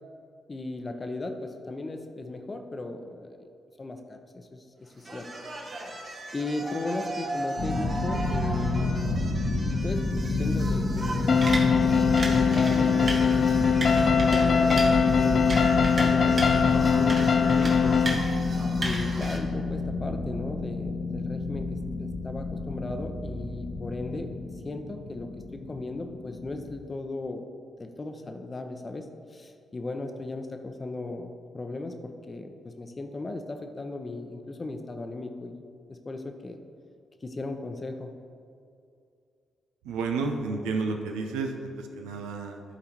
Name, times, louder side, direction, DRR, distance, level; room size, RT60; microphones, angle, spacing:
voice 1, 0.5-3.5 3.8-5.3 6.3-9.0 9.8-11.5 11.8-18.1 18.8-24.3 24.6-27.5 27.8-35.6 35.9-36.6 37.2-38.1, left 2 dB, 35° left, 6 dB, 0.7 m, -37 dB
sound 1, 5.0-19.4, right 2 dB, 50° right, 1.3 m, -36 dB
sound 2, 7.6-26.8, left 2 dB, 80° left, 1.1 m, -29 dB
sound 3, 11.3-18.1, left 6 dB, 55° left, 0.4 m, -22 dB
voice 2, 39.8-42.6, right 4 dB, 85° right, 4 dB, 0.5 m, -31 dB
11.0 x 3.9 x 3.0 m, 2.4 s
hypercardioid pair, 45°, 0 cm